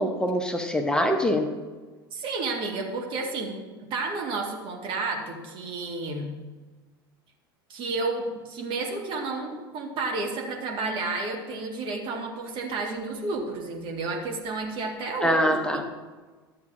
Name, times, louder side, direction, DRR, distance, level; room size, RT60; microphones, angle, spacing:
voice 1, 0.0-1.5 15.2-15.8, equal, 5° left, 4 dB, 0.9 m, -24 dB
voice 2, 2.1-6.3 7.7-15.9, right 3 dB, 40° right, 1 dB, 1.9 m, -31 dB
13.0 x 8.0 x 2.7 m, 1.3 s
figure-of-eight pair, 80°, 13 cm